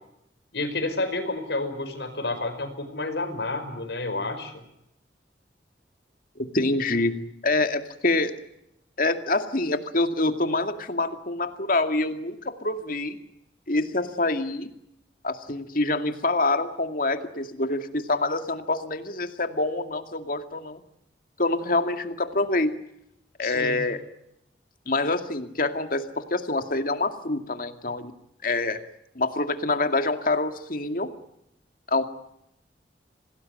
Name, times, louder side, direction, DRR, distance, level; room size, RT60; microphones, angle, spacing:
voice 1, 0.5-4.5 23.4-23.9, left 2 dB, 75° left, 8 dB, 5.1 m, -30 dB
voice 2, 6.4-7.1 7.4-8.3 9.0-13.2 13.7-14.7 15.2-20.8 21.4-22.7 23.4-24.0 24.9-28.1 28.4-28.8 29.2-31.1 31.9-32.1, left 2 dB, 50° left, 7 dB, 2.2 m, -26 dB
27.0 x 19.0 x 9.0 m, 0.81 s
head